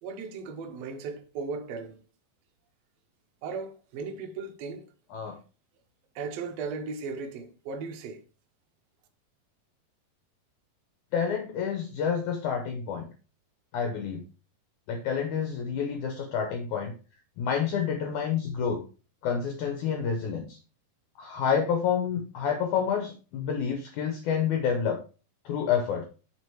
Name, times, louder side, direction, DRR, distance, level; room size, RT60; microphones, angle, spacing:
voice 1, 0.0-2.0 3.4-4.9 6.1-8.2, right 4 dB, 90° right, 1.4 m, -36 dB
voice 2, 11.1-13.1 13.7-14.2 14.9-16.9 17.4-18.8 19.2-20.6 21.2-25.0 25.5-26.0, left 7 dB, 70° left, 2.0 m, -28 dB
7.8 x 3.8 x 4.5 m
omnidirectional pair, 4.1 m